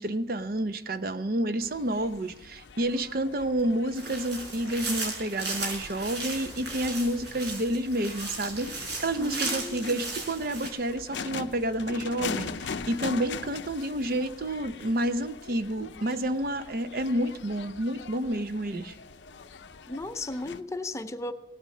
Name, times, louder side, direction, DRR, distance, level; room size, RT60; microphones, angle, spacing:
voice 1, 0.0-18.9, right 1 dB, 55° right, 0.7 m, -29 dB
sound 1, 1.6-20.6, left 5 dB, 85° left, 0.6 m, -42 dB
sound 2, 3.9-10.7, right 3 dB, 75° right, 5.0 m, -36 dB
voice 2, 9.2-10.0 19.9-21.3, left 2 dB, 15° left, 0.6 m, -35 dB
17.5 x 8.7 x 6.5 m
head